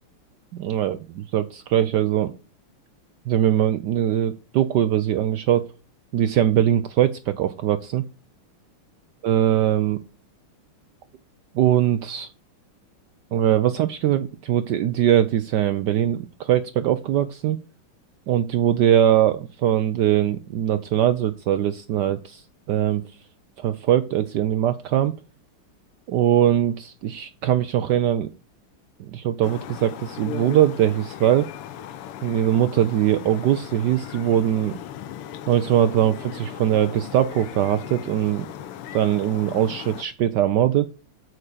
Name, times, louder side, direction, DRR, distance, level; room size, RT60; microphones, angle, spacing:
voice 1, 0.5-2.3 3.3-5.7 6.1-8.0 9.2-10.0 11.5-12.3 13.3-17.6 18.3-22.4 22.7-23.0 23.6-25.1 26.1-28.3 29.0-31.5 32.2-34.8 35.5-38.5 38.9-40.9, right 11 dB, 80° right, 11 dB, 0.9 m, -21 dB
sound 1, 29.4-40.0, left 10 dB, 90° left, 1.7 m, -38 dB
8.7 x 4.9 x 6.7 m, 0.33 s
omnidirectional pair, 2.4 m